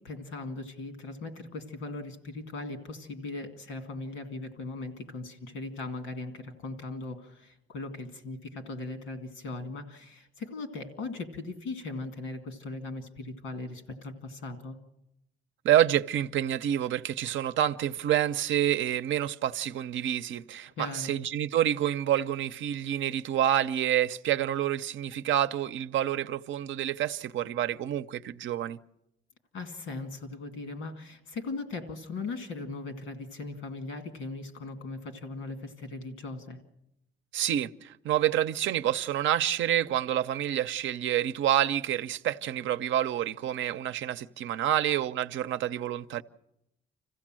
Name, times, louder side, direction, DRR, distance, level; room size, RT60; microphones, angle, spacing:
voice 1, 0.0-14.8 20.8-21.1 29.5-36.6, left 3 dB, 85° left, 2.3 m, -39 dB
voice 2, 15.6-28.8 37.3-46.2, right 11 dB, 75° right, 0.7 m, -28 dB
26.0 x 15.5 x 7.6 m
cardioid pair, 90°, 20 cm